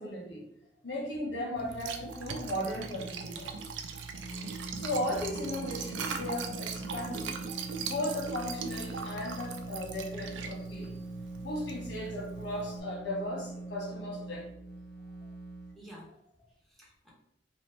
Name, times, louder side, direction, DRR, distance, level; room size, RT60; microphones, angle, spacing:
voice 1, 0.0-0.4 0.8-3.6 4.7-7.4 7.8-10.9 11.4-14.5, left 1 dB, 90° left, -3 dB, 1.2 m, -36 dB
Liquid, 1.6-12.8, right 5 dB, 90° right, 0.4 m, -40 dB
sound 1, 4.0-15.7, right 2 dB, 60° left, 0.9 m, -43 dB
voice 2, 15.7-17.1, equal, ahead, -6 dB, 0.9 m, -53 dB
3.0 x 2.1 x 3.0 m, 0.77 s
head